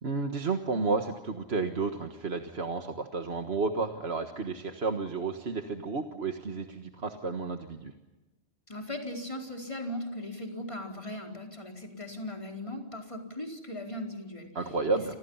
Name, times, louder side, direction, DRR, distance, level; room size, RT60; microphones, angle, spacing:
voice 1, 0.0-7.9 14.6-15.1, right 4 dB, 65° right, 5 dB, 1.8 m, -32 dB
voice 2, 8.7-14.5 14.9-15.1, left 1 dB, 30° left, 1 dB, 4.6 m, -38 dB
30.0 x 27.0 x 5.7 m, 1.1 s
omnidirectional pair, 1.1 m